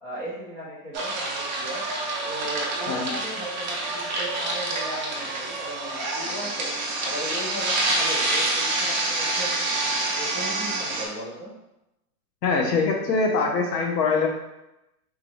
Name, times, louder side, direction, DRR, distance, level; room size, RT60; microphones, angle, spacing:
voice 1, 0.0-1.8 2.2-6.7 7.0-9.8 10.2-11.5, equal, 30° left, -10 dB, 0.7 m, -37 dB
sound 1, 0.9-11.1, right 2 dB, 30° right, 0.5 m, -27 dB
voice 2, 12.4-14.3, left 4 dB, 85° left, 2 dB, 0.9 m, -23 dB
3.6 x 2.9 x 3.1 m, 0.92 s
supercardioid pair, 170°, 47 cm